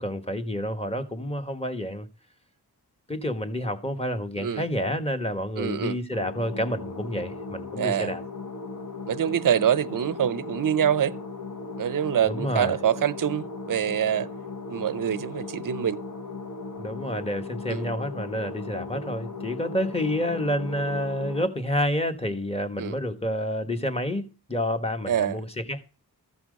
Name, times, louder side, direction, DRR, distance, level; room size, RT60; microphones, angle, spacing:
voice 1, 0.0-2.1 3.1-8.2 12.3-12.8 16.8-25.8, equal, 15° left, 1.5 m, -29 dB
voice 2, 5.6-6.0 7.8-8.1 9.1-11.2 11.8-14.3 14.7-16.0 17.7-17.9 22.8-23.0 25.1-25.4, right 9 dB, 55° right, 0.6 m, -25 dB
sound 1, 6.1-21.5, left 3 dB, 50° left, 1.2 m, -37 dB
14.0 x 6.0 x 5.2 m
wide cardioid pair, 60°, 40 cm